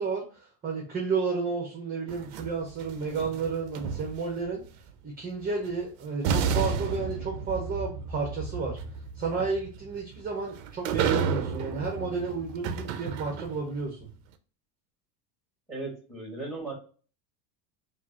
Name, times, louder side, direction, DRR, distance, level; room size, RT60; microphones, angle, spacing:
voice 1, 0.0-4.6 5.0-8.8 9.1-14.0, right 4 dB, 20° right, 0 dB, 0.8 m, -32 dB
sound 1, 2.1-4.5 5.7-5.8 6.2-13.7, right 6 dB, 55° right, 0.5 m, -31 dB
voice 2, 15.7-16.7, right 3 dB, ahead, -2 dB, 1.8 m, -36 dB
4.7 x 2.5 x 2.7 m, 0.39 s
supercardioid pair, 155°, 48 cm